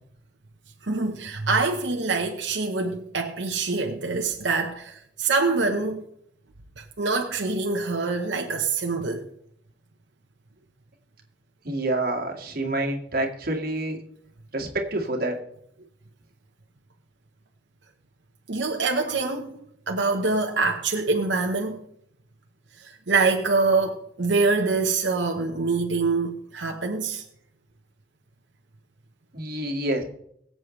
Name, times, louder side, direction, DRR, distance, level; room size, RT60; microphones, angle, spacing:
voice 1, 0.8-6.0 6.8-9.3 18.5-19.5 19.9-21.8 22.8-27.2, right 3 dB, 85° right, 1.1 m, -25 dB
voice 2, 11.6-14.0 14.5-15.4 19.1-19.2 29.3-30.0, right 1 dB, 55° right, 2.0 m, -27 dB
22.5 x 7.8 x 3.2 m
head